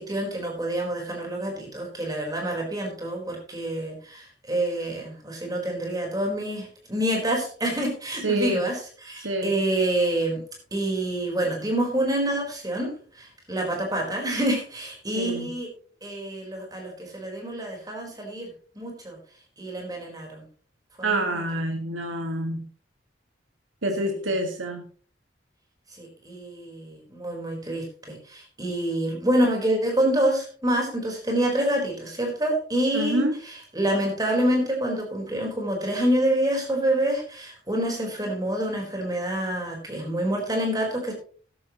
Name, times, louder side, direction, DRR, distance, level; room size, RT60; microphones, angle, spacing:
voice 1, 0.0-10.4 10.7-12.9 13.2-15.7 16.0-19.2 19.6-20.4 21.0-21.3 26.0-33.2 33.7-41.1, right 1 dB, 20° right, 1 dB, 4.4 m, -27 dB
voice 2, 8.2-8.6 9.2-9.6 15.1-15.5 21.0-22.7 23.8-24.8 32.9-33.4, right 1 dB, 85° right, 3 dB, 1.8 m, -27 dB
14.0 x 12.0 x 3.1 m, 0.43 s
head